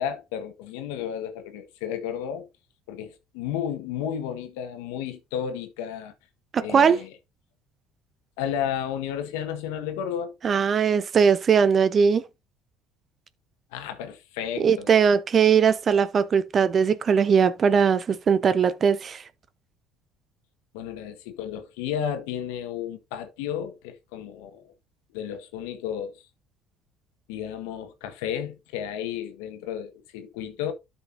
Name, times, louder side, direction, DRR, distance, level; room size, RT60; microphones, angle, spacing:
voice 1, 0.0-2.5 2.9-6.1 6.6-7.1 8.4-10.4 13.7-14.9 20.7-24.7 25.1-26.2 27.3-30.7, left 9 dB, 80° left, 1.4 m, -32 dB
voice 2, 6.5-7.0 10.4-12.2 14.6-19.2, right 6 dB, 40° right, 0.9 m, -20 dB
12.0 x 5.4 x 2.7 m
supercardioid pair, 75°, 0 cm